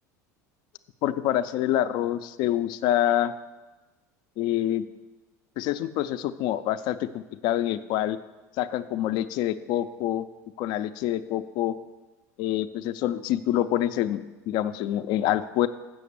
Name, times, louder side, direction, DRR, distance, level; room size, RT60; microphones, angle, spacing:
voice 1, 1.0-3.3 4.4-4.9 5.6-7.1 7.4-8.2 8.6-10.3 10.6-11.7 12.4-15.7, left 12 dB, 55° left, 11 dB, 0.5 m, -26 dB
7.7 x 6.5 x 7.0 m, 1.2 s
hypercardioid pair, 80°, 9 cm